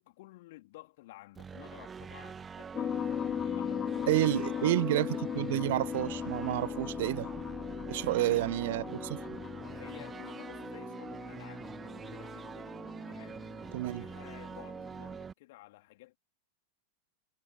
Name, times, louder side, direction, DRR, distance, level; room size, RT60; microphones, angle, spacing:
voice 1, 0.0-4.7 7.9-9.1 9.7-11.7 11.9-12.7 13.0-13.4 13.9-16.2, left 19 dB, 50° left, 3.6 m, -53 dB
sound 1, 1.3-15.3, right 6 dB, 20° right, 1.8 m, -45 dB
sound 2, 2.7-15.2, left 9 dB, 25° left, 0.9 m, -38 dB
voice 2, 4.1-7.3 7.9-9.2 13.7-14.0, right 17 dB, 55° right, 0.5 m, -30 dB
figure-of-eight pair, 90°, 0 cm